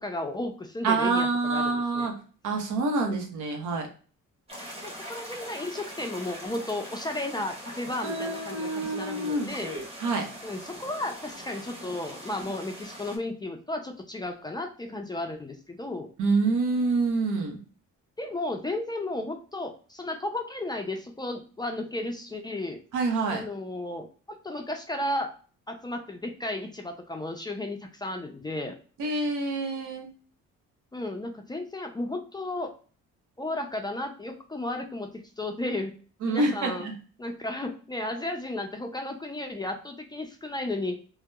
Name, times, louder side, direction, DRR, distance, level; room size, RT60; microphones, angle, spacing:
voice 1, 0.0-2.1 3.1-3.2 4.8-9.7 10.4-16.1 18.2-22.8 23.3-25.3 25.7-28.8 30.9-32.7 33.4-35.9 36.2-36.9 37.2-41.0, left 2 dB, 15° left, 4 dB, 0.3 m, -34 dB
voice 2, 0.8-2.1 2.4-3.9 8.0-9.5 10.0-10.2 16.2-17.6 22.9-23.4 29.0-30.1 36.2-36.9, right 3 dB, 80° right, 3 dB, 0.8 m, -26 dB
sound 1, 4.5-13.2, equal, 20° right, 1.0 m, -41 dB
2.8 x 2.0 x 2.2 m, 0.39 s
cardioid pair, 90°, 30 cm